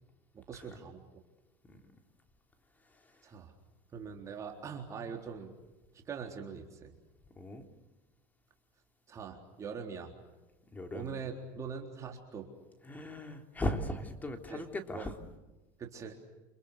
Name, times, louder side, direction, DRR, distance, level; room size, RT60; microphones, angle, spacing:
voice 1, 0.3-1.0 3.2-3.5 3.9-5.5 5.9-6.9 9.1-10.1 10.9-12.5 14.5-14.6 14.9-15.1 15.8-16.1, right 6 dB, 30° right, 2 dB, 3.8 m, -42 dB
voice 2, 2.9-3.2 7.4-7.7 10.7-11.1 12.8-15.2, left 1 dB, 15° left, 5 dB, 3.5 m, -38 dB
29.0 x 28.0 x 6.6 m, 1.1 s
supercardioid pair, 140°, 11 cm